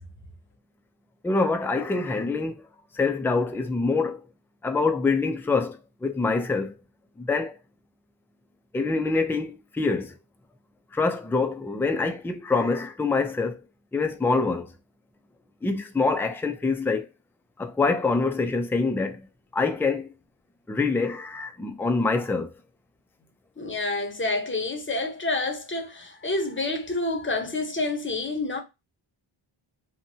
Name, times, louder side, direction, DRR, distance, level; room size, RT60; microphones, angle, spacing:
voice 1, 1.2-2.7 2.9-4.2 4.6-6.7 7.2-7.6 8.7-10.2 10.9-13.6 13.9-14.7 15.6-17.1 17.6-19.2 19.5-20.1 20.7-22.5, left 3 dB, 5° left, 0.3 m, -25 dB
voice 2, 23.6-28.6, left 2 dB, 25° left, 0.7 m, -28 dB
2.9 x 2.3 x 2.7 m
wide cardioid pair, 60°, 50 cm